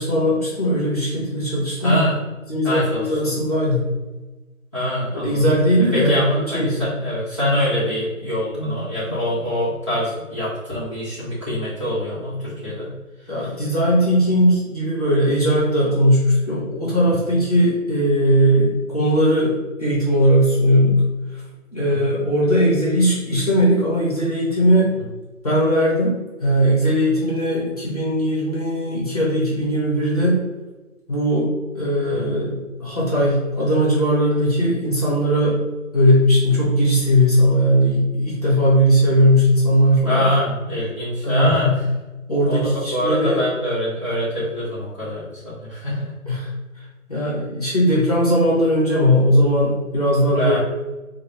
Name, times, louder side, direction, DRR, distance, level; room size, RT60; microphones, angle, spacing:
voice 1, 0.0-2.0 2.5-3.9 5.1-6.9 13.3-21.0 21.3-21.4 21.7-25.0 25.4-30.4 31.1-35.6 35.9-40.2 41.2-41.8 42.3-43.4 46.3-46.5 47.1-50.6, equal, 30° left, -7 dB, 1.2 m, -18 dB
voice 2, 1.8-2.2 2.6-3.1 4.7-5.5 5.9-12.9 21.9-22.1 32.1-32.2 40.0-41.7 42.5-46.1 50.3-50.6, left 1 dB, 20° right, -11 dB, 1.2 m, -24 dB
5.4 x 2.3 x 2.9 m, 1.2 s
figure-of-eight pair, 165°, 41 cm